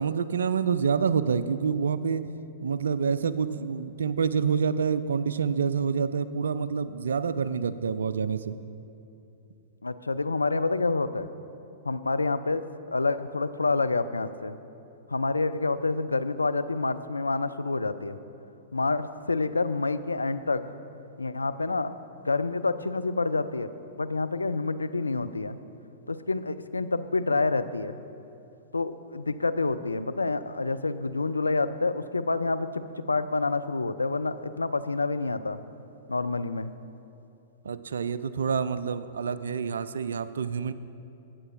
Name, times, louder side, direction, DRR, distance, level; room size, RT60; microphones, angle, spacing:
voice 1, 0.0-2.2 2.6-8.6 37.6-40.7, right 6 dB, 65° right, 15 dB, 0.3 m, -27 dB
voice 2, 9.8-11.3 11.8-14.6 15.1-18.2 18.7-20.7 21.2-22.0 22.2-23.7 24.0-25.6 26.1-28.0 28.7-35.6 36.1-36.7, left 3 dB, 80° left, 12 dB, 0.3 m, -28 dB
17.5 x 7.7 x 2.6 m, 2.8 s
figure-of-eight pair, 100°, 0 cm